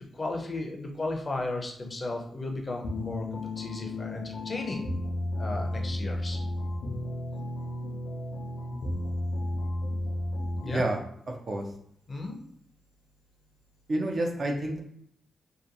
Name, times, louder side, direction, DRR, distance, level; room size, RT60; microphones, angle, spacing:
voice 1, 0.1-4.8 5.4-6.4 10.6-10.8 12.1-12.4, left 2 dB, 35° left, 2 dB, 0.5 m, -34 dB
sound 1, 2.8-10.9, left 1 dB, 90° left, 0.5 m, -33 dB
voice 2, 10.6-11.0 11.5-11.7 13.9-14.8, right 1 dB, 45° right, 1 dB, 0.5 m, -28 dB
2.7 x 2.2 x 2.5 m, 0.68 s
cardioid pair, 105°, 0 cm